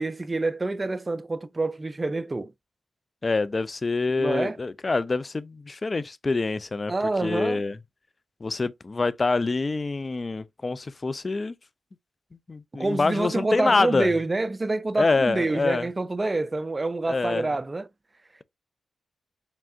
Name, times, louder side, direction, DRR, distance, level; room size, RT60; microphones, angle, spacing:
voice 1, 0.0-2.5 4.2-4.6 6.9-7.6 12.8-17.9, right 2 dB, 35° right, 0.4 m, -27 dB
voice 2, 3.2-6.9 7.2-7.8 8.4-11.6 12.5-14.1 15.0-15.9 17.1-17.5, left 3 dB, 40° left, 0.5 m, -26 dB
4.9 x 3.4 x 2.5 m
supercardioid pair, 40°, 0 cm